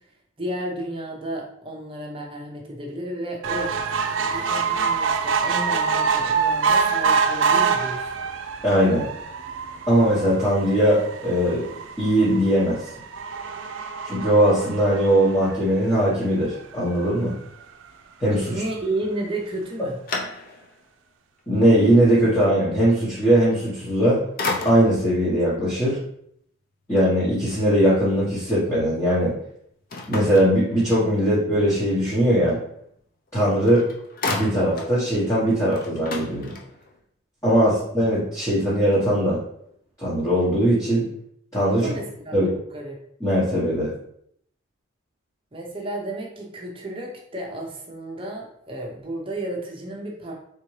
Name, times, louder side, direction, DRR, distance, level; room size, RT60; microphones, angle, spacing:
voice 1, 0.4-3.7 4.3-8.0 18.4-20.0 37.7-37.8 41.7-43.0 45.5-50.3, right 1 dB, 25° right, -1 dB, 0.7 m, -32 dB
sound 1, 3.4-16.0 16.6-16.7 17.0-17.1 17.3-17.4, right 5 dB, 70° right, 0.5 m, -25 dB
voice 2, 8.6-9.1 9.9-11.6 12.0-12.9 14.0-17.3 18.2-18.5 21.5-24.2 24.6-26.0 26.9-29.3 30.1-32.6 33.3-33.8 34.3-36.6 37.4-39.4 40.0-41.1 41.5-41.9 42.3-42.5 43.2-43.9, right 1 dB, 15° left, -10 dB, 1.1 m, -20 dB
sound 2, 19.4-20.9 21.4-21.5 23.7-24.0 24.4-25.1 29.9-31.2 33.3-33.4 33.7-35.0 35.3-35.4 35.7-37.0, left 3 dB, 45° left, 0.6 m, -32 dB
4.1 x 3.7 x 3.1 m, 0.70 s
head